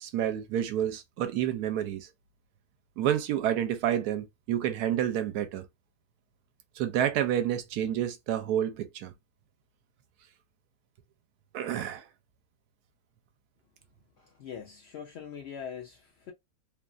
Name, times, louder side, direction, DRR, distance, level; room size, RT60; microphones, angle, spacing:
voice 1, 0.0-2.1 3.0-5.6 6.8-9.1 11.5-12.1, right 10 dB, 80° right, 1.1 m, -29 dB
voice 2, 14.2-16.3, left 7 dB, 80° left, 0.5 m, -42 dB
3.1 x 2.4 x 2.3 m
omnidirectional pair, 1.6 m